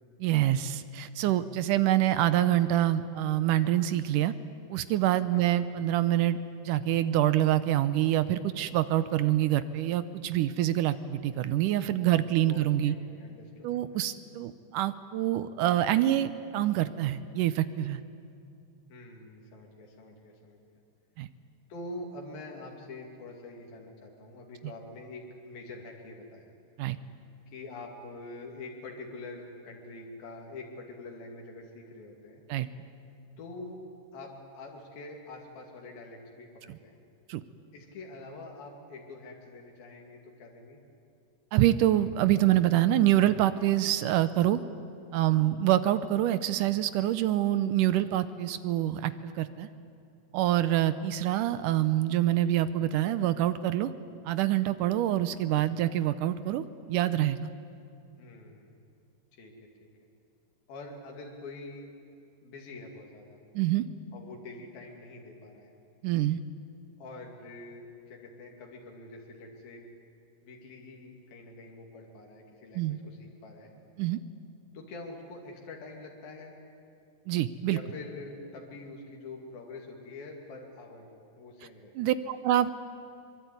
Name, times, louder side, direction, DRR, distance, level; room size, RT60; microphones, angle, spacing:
voice 1, 0.2-4.3 4.7-6.4 6.6-13.0 13.6-18.0 21.2-21.3 26.8-27.0 32.5-32.7 37.3-37.4 41.5-44.6 45.1-49.7 50.3-53.9 54.3-57.4 63.6-63.9 66.0-66.4 72.8-73.0 74.0-74.2 77.3-77.8 82.0-82.7, right 13 dB, 75° right, 14 dB, 2.1 m, -26 dB
voice 2, 12.4-13.8 18.9-20.6 21.7-26.5 27.5-32.4 33.4-33.8 34.1-37.0 37.7-40.8 58.2-58.7 59.3-59.5 60.7-61.9 62.4-63.4 64.1-65.7 67.0-69.9 70.4-73.7 74.7-76.5 77.7-81.1 81.4-81.9, left 2 dB, 90° left, 0 dB, 4.3 m, -45 dB
24.0 x 23.0 x 9.5 m, 2.6 s
omnidirectional pair, 4.1 m